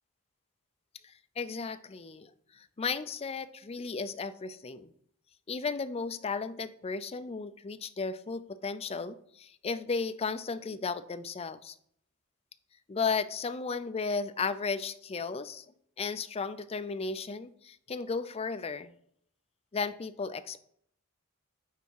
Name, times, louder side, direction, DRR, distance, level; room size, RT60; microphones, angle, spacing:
voice 1, 1.0-4.9 5.5-11.7 12.9-15.6 16.0-18.9 19.7-20.6, left 4 dB, 25° left, 11 dB, 0.4 m, -35 dB
9.4 x 3.5 x 4.6 m, 0.67 s
head